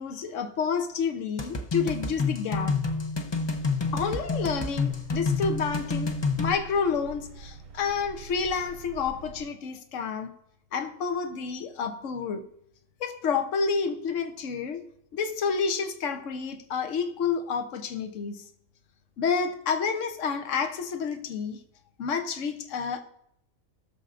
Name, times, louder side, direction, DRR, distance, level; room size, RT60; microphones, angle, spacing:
voice 1, 0.0-2.8 3.9-10.3 10.7-12.5 13.0-14.8 15.1-18.5 19.2-21.6 22.0-23.0, left 5 dB, 70° left, 1.2 m, -29 dB
sound 1, 1.4-6.5, left 4 dB, 30° left, 0.5 m, -29 dB
sound 2, 3.6-9.5, right 4 dB, 70° right, 1.2 m, -46 dB
18.0 x 6.7 x 2.5 m
omnidirectional pair, 1.4 m